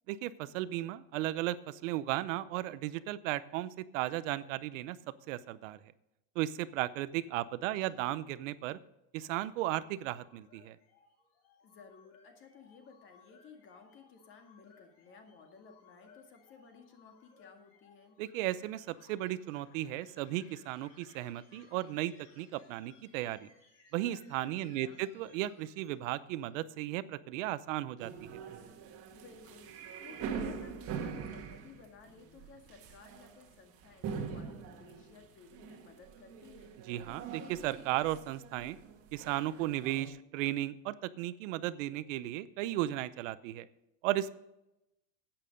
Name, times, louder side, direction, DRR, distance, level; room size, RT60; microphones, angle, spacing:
voice 1, 0.1-5.0 5.3-5.8 6.4-8.8 9.1-10.8 18.2-23.5 23.9-28.4 36.9-38.8 39.1-43.7 44.0-44.3, right 14 dB, 85° right, 16 dB, 0.8 m, -35 dB
voice 2, 7.6-8.0 11.6-18.2 24.5-25.0 29.1-29.7 30.0-36.8, left 5 dB, 35° left, 4 dB, 2.0 m, -56 dB
sound 1, 9.8-26.3, left 5 dB, 80° left, 4.5 m, -64 dB
sound 2, 28.0-40.1, right 6 dB, 40° right, 1.6 m, -43 dB
11.5 x 9.0 x 5.2 m, 0.89 s
cardioid pair, 165°, 37 cm